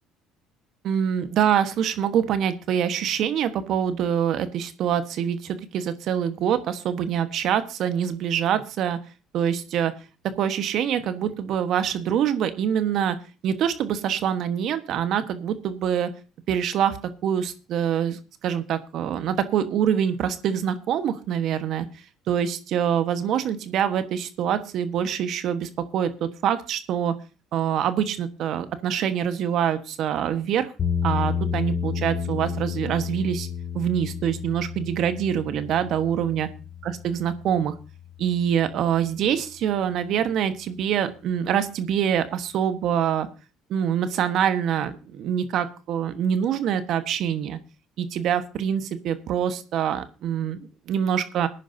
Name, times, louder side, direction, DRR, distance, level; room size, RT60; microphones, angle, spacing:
voice 1, 0.8-9.0 9.3-9.9 10.4-13.2 13.4-16.1 16.5-17.0 17.2-21.9 22.3-27.1 27.5-30.7 31.0-33.5 33.7-36.5 36.8-37.7 38.2-43.3 43.7-47.6 48.0-50.6 50.9-51.5, right 9 dB, 60° right, 11 dB, 1.3 m, -25 dB
sound 1, 30.8-38.9, left 7 dB, 45° left, 2.5 m, -31 dB
19.5 x 10.0 x 2.8 m, 0.32 s
supercardioid pair, 70°, 0 cm